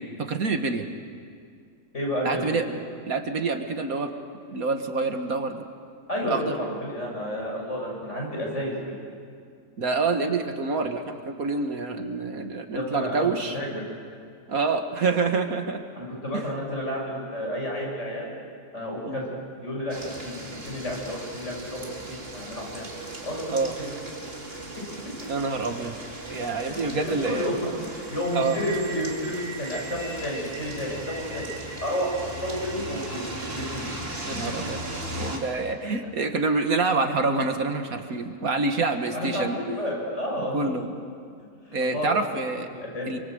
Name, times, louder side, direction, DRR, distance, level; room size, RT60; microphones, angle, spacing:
voice 1, 0.2-0.9 2.2-2.6 3.1-4.1 4.5-5.6 6.2-6.5 9.8-13.6 14.5-15.8 16.3-16.4 19.1-19.2 23.5-23.7 25.3-26.0 26.3-27.5 28.3-28.6 34.2-34.8 35.1-39.6 40.5-40.8 41.7-42.7 43.1-43.2, right 3 dB, 65° right, 6 dB, 2.0 m, -27 dB
voice 2, 1.9-2.6 6.1-8.7 12.7-13.3 13.5-13.7 15.9-18.3 18.7-19.2 19.6-20.0 20.2-20.4 20.7-22.8 23.2-23.6 23.8-24.1 26.3-26.4 27.0-31.5 31.8-33.8 39.1-40.9 41.7-42.1 42.7-43.1, equal, 50° left, -2 dB, 7.7 m, -31 dB
sound 1, 19.9-35.4, right 1 dB, 40° right, 3.4 m, -37 dB
27.5 x 25.0 x 8.0 m, 2.2 s
omnidirectional pair, 1.6 m